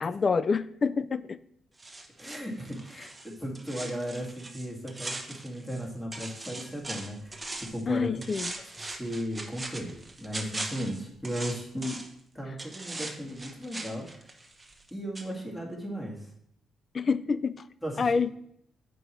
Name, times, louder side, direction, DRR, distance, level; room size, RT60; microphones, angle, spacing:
voice 1, 0.0-1.4 7.9-8.5 16.9-17.6 18.0-18.3, left 5 dB, 40° left, 16 dB, 0.4 m, -27 dB
sound 1, 1.8-5.8 6.1-7.8 8.2-12.2 12.6-14.9 15.1-15.3, right 2 dB, 15° right, 1.1 m, -40 dB
voice 2, 2.2-8.1 8.8-12.0 12.3-14.3 14.9-16.3 17.8-18.1, equal, 10° left, -2 dB, 2.1 m, -36 dB
8.3 x 5.3 x 4.5 m, 0.73 s
cardioid pair, 90°, 0 cm